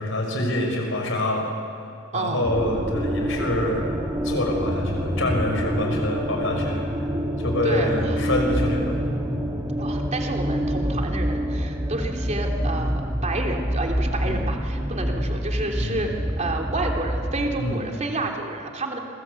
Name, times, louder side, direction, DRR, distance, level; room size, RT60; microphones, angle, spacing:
voice 1, 0.0-1.5 2.1-3.9 4.2-6.8 7.4-9.0 9.3-9.6 14.2-14.4 15.8-16.0 17.6-17.8, left 1 dB, 65° left, 2 dB, 6.1 m, -26 dB
voice 2, 2.1-2.4 7.6-8.2 9.8-19.0, right 2 dB, 35° right, 2 dB, 3.1 m, -30 dB
sound 1, 2.4-17.6, equal, 15° right, 2.3 m, -27 dB
28.5 x 22.5 x 8.3 m, 2.5 s
head